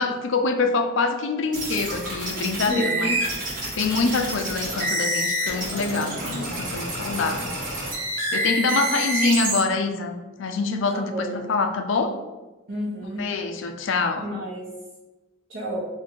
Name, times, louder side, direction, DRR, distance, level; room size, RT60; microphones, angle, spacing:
voice 1, 0.0-3.2 3.7-7.5 8.3-12.2 13.2-14.2, left 4 dB, 60° left, 7 dB, 0.4 m, -25 dB
sound 1, 1.5-9.6, right 1 dB, 40° right, 1.1 m, -28 dB
voice 2, 2.7-3.1 10.9-11.3 12.7-13.3 14.2-14.7 15.5-15.8, equal, 60° right, -10 dB, 1.1 m, -30 dB
3.7 x 2.6 x 4.4 m, 1.1 s
head